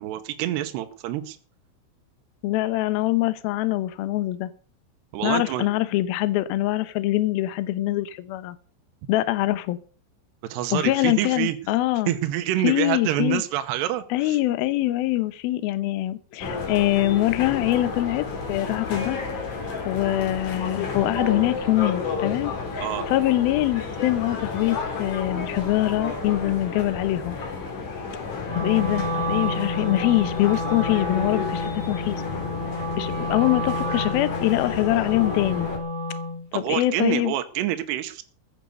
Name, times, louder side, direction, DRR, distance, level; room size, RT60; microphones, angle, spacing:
voice 1, 0.0-1.4 5.1-5.7 10.5-11.6 12.1-14.4 22.8-23.0 36.5-38.2, right 13 dB, 75° right, 7 dB, 2.7 m, -27 dB
voice 2, 2.4-4.5 5.2-8.6 9.1-9.8 10.7-12.1 12.6-13.4 14.1-19.2 19.8-27.4 28.5-32.2 33.0-35.7 36.5-37.3, left 16 dB, 85° left, 13 dB, 2.1 m, -24 dB
sound 1, 16.4-35.8, left 4 dB, 45° left, 4.3 m, -31 dB
Wind instrument woodwind instrument, 28.4-36.4, left 1 dB, 25° right, 1.9 m, -30 dB
15.0 x 9.5 x 6.6 m, 0.41 s
omnidirectional pair, 5.7 m